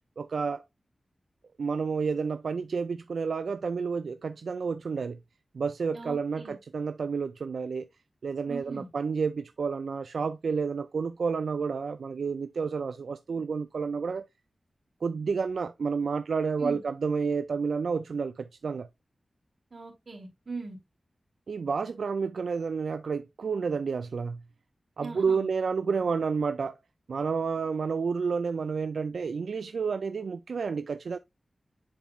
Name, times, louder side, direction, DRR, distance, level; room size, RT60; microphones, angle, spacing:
voice 1, 0.2-0.6 1.6-5.2 5.5-7.9 8.2-14.2 15.0-18.9 21.5-24.4 25.0-26.8 27.1-31.2, right 5 dB, 85° right, 0.3 m, -30 dB
voice 2, 5.9-6.5 8.5-8.9 16.6-16.8 19.7-20.8 25.0-25.5, right 3 dB, 55° right, 3.0 m, -39 dB
10.5 x 4.2 x 2.4 m
wide cardioid pair, 75°, 0 cm